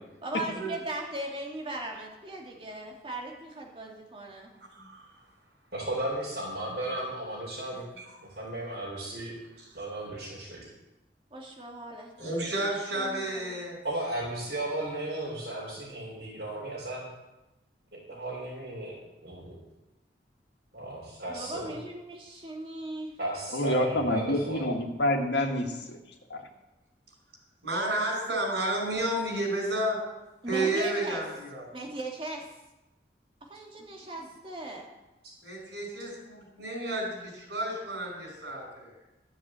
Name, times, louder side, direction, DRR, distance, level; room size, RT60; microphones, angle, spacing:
voice 1, 0.2-4.5 11.3-12.1 12.9-13.5 21.3-23.1 24.0-24.1 30.4-31.2 31.7-32.5 33.5-34.9, right 1 dB, 30° right, 0 dB, 2.3 m, -38 dB
voice 2, 4.7-5.1 7.9-8.1 9.6-9.7 12.2-13.8 27.6-30.0 30.5-31.7 35.4-38.9, right 1 dB, 85° right, 1 dB, 5.1 m, -31 dB
voice 3, 5.7-7.8 8.4-9.3 9.7-10.7 13.8-17.0 17.9-19.0 19.2-19.6 20.7-21.7 23.2-24.7, right 1 dB, 65° right, -8 dB, 4.4 m, -35 dB
voice 4, 23.5-26.0 26.3-26.4, left 1 dB, 90° left, 2 dB, 1.8 m, -27 dB
12.0 x 7.3 x 7.6 m, 0.99 s
head